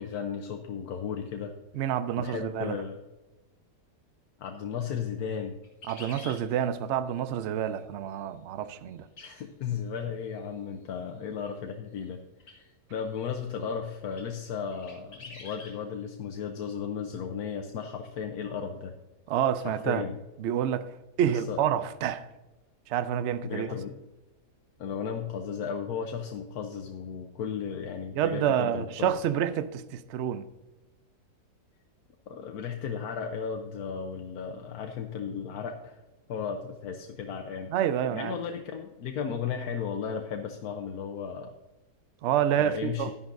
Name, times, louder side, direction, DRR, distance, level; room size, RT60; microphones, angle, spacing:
voice 1, 0.0-1.5 2.2-3.0 4.4-5.6 9.2-12.6 12.9-18.9 19.6-20.2 21.3-21.6 23.4-23.9 24.8-29.2 32.3-36.0 36.3-37.7 38.1-41.5 42.6-43.1, left 7 dB, 70° left, 1.2 m, -35 dB
voice 2, 1.7-2.8 5.9-9.1 19.3-20.0 20.4-20.9 21.2-22.3 22.9-23.7 28.1-30.5 37.7-38.4 42.2-43.1, right 9 dB, 65° right, 0.7 m, -28 dB
sound 1, 5.6-6.4 9.2-9.3 9.7-9.8 12.4-12.6 13.2-13.3 14.1-14.3 14.7-15.7, left 3 dB, 55° left, 2.2 m, -46 dB
11.5 x 10.5 x 2.6 m
omnidirectional pair, 1.7 m